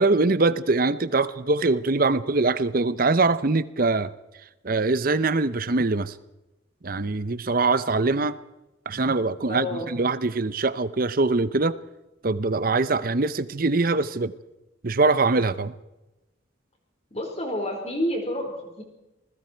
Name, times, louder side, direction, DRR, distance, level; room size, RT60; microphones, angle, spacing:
voice 1, 0.0-4.1 4.6-6.1 6.8-8.4 8.9-11.8 12.2-14.3 14.8-15.7, right 3 dB, 45° right, 15 dB, 0.7 m, -23 dB
voice 2, 9.5-9.9 17.1-18.5 18.8-18.9, left 1 dB, 30° left, 2 dB, 4.6 m, -29 dB
28.0 x 20.5 x 4.6 m, 1.0 s
head